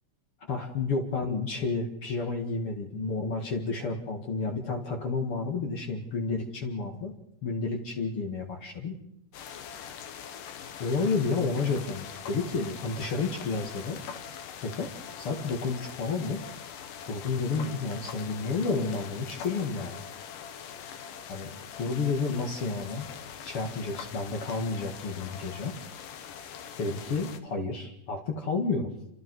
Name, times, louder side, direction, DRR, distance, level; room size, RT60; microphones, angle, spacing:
voice 1, 0.5-7.1 7.4-8.9 10.8-14.0 14.6-14.9 15.2-16.4 17.1-20.0 21.3-23.1 23.4-25.7 26.8-28.9, left 4 dB, 45° left, 2 dB, 2.7 m, -31 dB
sound 1, 9.3-27.4, left 8 dB, 85° left, 3.1 m, -43 dB
29.5 x 25.5 x 4.8 m, 0.77 s
omnidirectional pair, 3.7 m